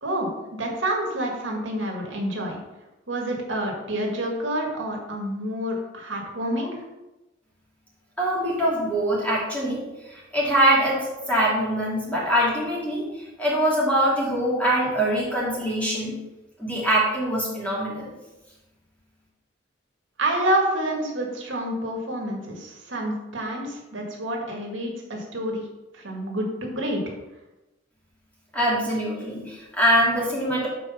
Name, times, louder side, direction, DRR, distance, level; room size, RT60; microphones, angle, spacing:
voice 1, 0.0-2.6 3.1-6.8 20.2-25.6 26.0-27.0, right 1 dB, 85° right, 0 dB, 1.9 m, -28 dB
voice 2, 8.2-9.8 10.1-11.0 11.3-13.0 13.4-16.1 16.6-18.1 28.5-30.7, right 1 dB, 10° left, -6 dB, 2.7 m, -23 dB
7.7 x 4.6 x 5.7 m, 1.0 s
head